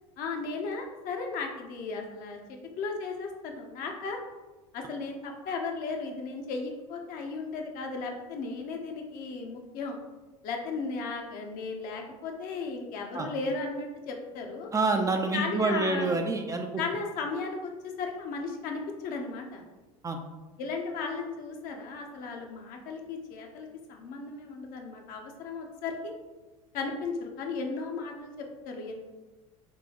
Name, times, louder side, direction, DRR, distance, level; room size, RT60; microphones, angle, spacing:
voice 1, 0.2-4.2 4.7-10.0 10.4-14.7 15.3-16.1 16.8-17.7 18.0-19.6 20.6-26.1 26.7-28.9, left 4 dB, 50° left, 2 dB, 0.7 m, -35 dB
voice 2, 14.7-16.7 20.0-20.2, right 3 dB, 20° right, 4 dB, 0.4 m, -27 dB
5.3 x 2.2 x 2.8 m, 1.2 s
hypercardioid pair, 75°, 18 cm